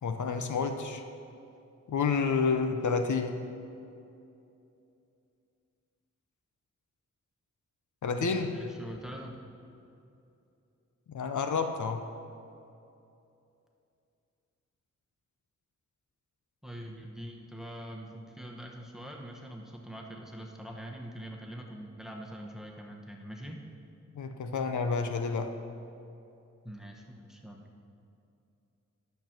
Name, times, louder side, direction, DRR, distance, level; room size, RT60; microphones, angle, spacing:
voice 1, 0.0-1.0 1.9-3.3 8.0-8.5 11.1-12.0 24.2-25.5, left 5 dB, 85° left, 6 dB, 0.7 m, -29 dB
voice 2, 8.1-9.3 16.6-23.6 26.6-27.7, equal, ahead, 0 dB, 1.1 m, -43 dB
10.5 x 6.9 x 5.9 m, 2.7 s
wide cardioid pair, 115°, 29 cm